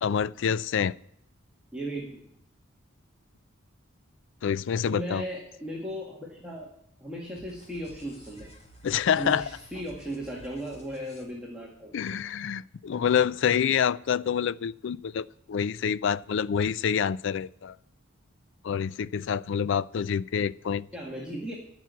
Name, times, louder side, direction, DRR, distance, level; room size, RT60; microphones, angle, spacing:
voice 1, 0.0-1.0 4.4-5.2 8.8-9.5 11.9-17.7 18.6-20.9, left 7 dB, 65° left, 20 dB, 0.4 m, -27 dB
voice 2, 1.7-2.3 4.8-6.7 7.0-8.5 9.2-11.9 20.9-21.5, right 1 dB, 5° right, -4 dB, 1.9 m, -36 dB
sound 1, 7.3-11.2, equal, 30° left, 2.1 m, -51 dB
14.5 x 6.1 x 8.2 m, 0.73 s
head